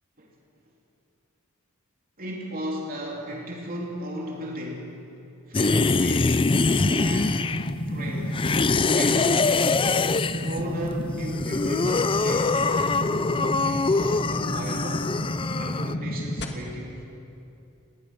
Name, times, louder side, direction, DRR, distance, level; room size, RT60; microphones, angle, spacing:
voice 1, 2.2-4.9 5.5-7.5 7.9-8.5 8.9-9.4 10.3-15.1 15.5-17.1, equal, 45° right, -2 dB, 3.4 m, -36 dB
sound 1, 5.5-7.8 8.3-10.6 11.2-15.9, left 3 dB, 25° left, 0.5 m, -24 dB
sound 2, 6.4-16.4, equal, 55° left, 2.0 m, -31 dB
29.5 x 18.5 x 6.3 m, 2.7 s
head